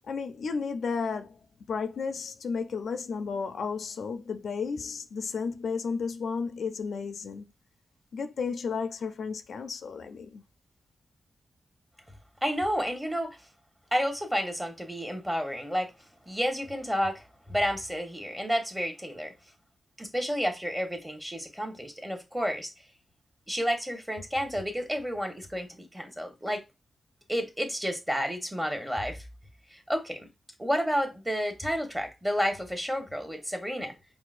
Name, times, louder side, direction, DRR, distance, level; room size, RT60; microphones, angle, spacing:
voice 1, 0.0-1.4 1.7-7.4 8.1-10.4, left 5 dB, 85° left, 0.4 m, -33 dB
voice 2, 12.4-13.4 13.9-15.9 16.3-19.3 20.0-22.7 23.5-26.6 27.3-29.2 29.7-30.3 30.6-33.9, equal, 10° right, 1.0 m, -30 dB
4.6 x 2.0 x 2.4 m
cardioid pair, 65°, 0 cm